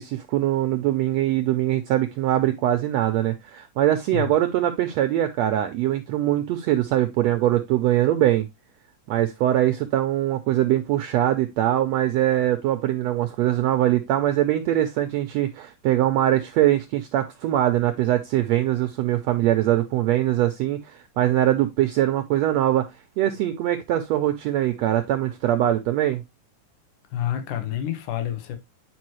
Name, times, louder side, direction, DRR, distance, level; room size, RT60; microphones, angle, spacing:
voice 1, 0.0-8.5 9.1-22.9 23.2-26.2, right 13 dB, 90° right, 1.5 m, -22 dB
voice 2, 27.1-28.6, left 11 dB, 70° left, 2.5 m, -28 dB
9.3 x 4.7 x 3.0 m
omnidirectional pair, 3.8 m